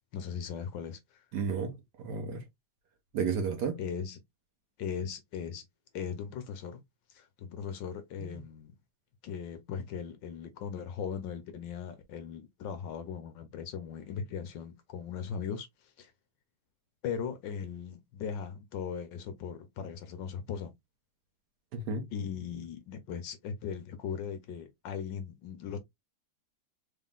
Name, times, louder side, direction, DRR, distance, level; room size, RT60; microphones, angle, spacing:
voice 1, 0.1-1.2 3.8-4.2 4.8-5.6 5.9-6.8 7.1-8.8 9.2-16.1 17.0-20.7 22.1-25.8, left 7 dB, 70° left, 1.3 m, -38 dB
voice 2, 1.3-2.4 3.1-3.8 21.7-22.1, right 5 dB, 65° right, 1.2 m, -32 dB
3.8 x 3.7 x 2.3 m
omnidirectional pair, 2.3 m